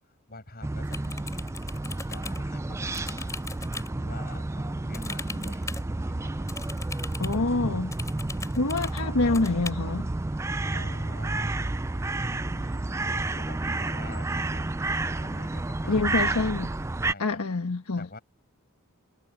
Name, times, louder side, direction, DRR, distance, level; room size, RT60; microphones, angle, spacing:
voice 1, 0.3-1.7 2.1-3.4 3.9-5.6 6.0-6.5 8.7-8.9 10.7-11.5 12.3-14.8 15.2-16.4 17.0-17.3 18.0-18.2, left 2 dB, 45° left, 6.5 m, -46 dB
sound 1, 0.6-17.1, right 2 dB, 10° right, 0.3 m, -31 dB
sound 2, 0.8-2.4 2.9-3.9 4.9-5.8 6.5-7.4 7.9-9.0 9.3-9.7, left 3 dB, 15° left, 4.0 m, -39 dB
voice 2, 7.2-7.9 8.6-10.1 15.9-16.7 17.2-18.1, left 3 dB, 85° left, 1.3 m, -26 dB
head